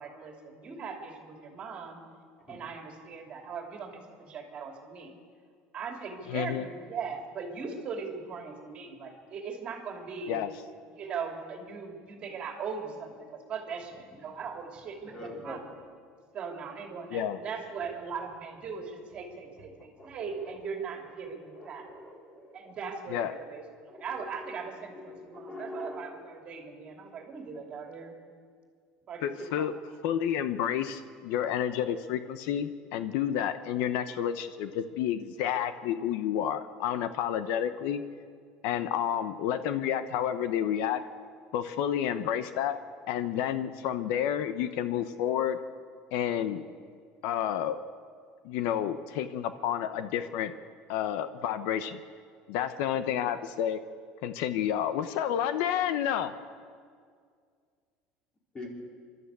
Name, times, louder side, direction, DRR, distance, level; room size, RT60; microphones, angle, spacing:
voice 1, 0.0-2.0 2.5-5.1 5.7-10.4 10.9-15.7 16.3-21.9 22.5-28.2 29.1-29.3 29.6-30.0, right 5 dB, 35° right, 2 dB, 2.8 m, -39 dB
voice 2, 6.3-6.7 10.3-10.5 17.1-17.4 23.1-23.3 29.2-29.7 30.0-38.0 38.6-41.0 41.5-42.8 43.1-45.6 46.1-46.6 47.2-47.8 48.4-50.5 50.9-52.0 52.5-53.8 54.2-56.3, left 10 dB, 70° left, 11 dB, 0.9 m, -30 dB
voice 3, 15.1-15.6 17.8-18.0 20.0-20.6 21.6-22.7 23.9-24.3 25.1-26.0 58.5-58.7, left 1 dB, 20° left, -1 dB, 4.1 m, -43 dB
26.5 x 12.5 x 8.2 m, 2.1 s
cardioid pair, 160°, 4 cm